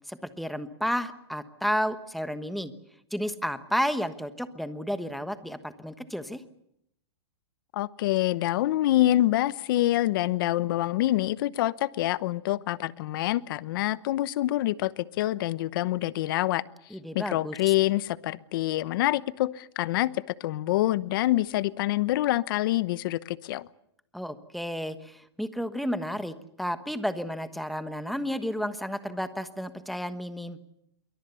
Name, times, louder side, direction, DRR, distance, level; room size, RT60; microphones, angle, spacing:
voice 1, 0.1-2.7 3.1-6.4 16.9-17.7 24.1-30.6, equal, ahead, 10 dB, 1.3 m, -32 dB
voice 2, 7.7-16.6 17.1-23.7, left 15 dB, 55° left, 17 dB, 0.9 m, -26 dB
27.0 x 23.0 x 7.0 m, 0.77 s
supercardioid pair, 150°, 14 cm